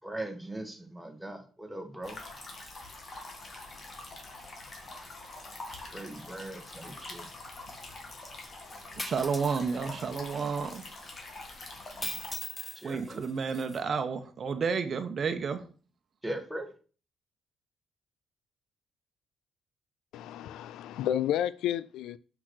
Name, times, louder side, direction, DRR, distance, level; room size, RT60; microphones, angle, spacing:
voice 1, 0.0-2.2 5.7-7.3 12.7-13.3 16.2-16.7, right 1 dB, 5° right, 1.7 m, -40 dB
sound 1, 2.0-12.3, left 2 dB, 40° left, 2.4 m, -45 dB
sound 2, 9.0-9.6 10.3-10.4 12.0-13.8, left 2 dB, 15° left, 0.6 m, -39 dB
voice 2, 9.0-10.8 12.8-15.6, right 5 dB, 45° right, 1.0 m, -31 dB
voice 3, 20.1-22.2, left 11 dB, 90° left, 0.4 m, -31 dB
6.2 x 6.0 x 6.4 m
cardioid pair, 110°, 0 cm